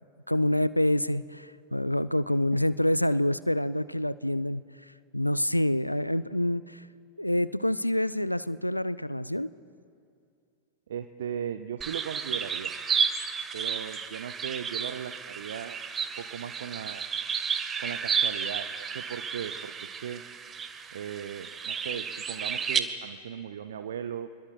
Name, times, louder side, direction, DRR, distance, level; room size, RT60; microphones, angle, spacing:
voice 1, 0.3-4.6 5.1-6.8 7.2-9.5, left 1 dB, 90° left, 17 dB, 0.3 m, -27 dB
voice 2, 10.9-12.7 13.5-15.8 16.2-17.0 17.8-18.7 18.9-19.7 20.0-20.2 20.9-24.3, right 8 dB, 65° right, 9 dB, 0.5 m, -37 dB
sound 1, 11.8-22.8, right 6 dB, 20° right, 0.9 m, -32 dB
26.0 x 21.0 x 2.4 m, 2.4 s
figure-of-eight pair, 90°, 0 cm